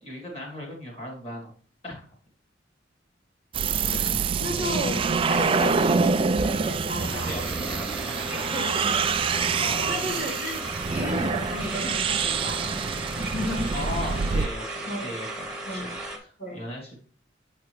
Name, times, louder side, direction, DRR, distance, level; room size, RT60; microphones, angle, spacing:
voice 1, 0.0-1.5 1.8-2.1 7.0-8.8 9.6-10.3 13.7-17.0, left 1 dB, 35° left, -1 dB, 2.4 m, -38 dB
sound 1, 3.5-14.5, right 5 dB, 30° right, 0.3 m, -26 dB
voice 2, 3.8-7.5 8.5-9.1 9.9-10.6 10.9-12.8 13.2-13.7 14.9-15.1 15.7-16.0 16.4-16.6, left 1 dB, 55° left, -3 dB, 1.6 m, -33 dB
Hands, 4.3-9.3, right 1 dB, 85° left, 2.8 m, -43 dB
sound 2, 7.0-16.2, right 2 dB, 5° right, 1.1 m, -36 dB
7.5 x 5.8 x 3.1 m, 0.42 s
head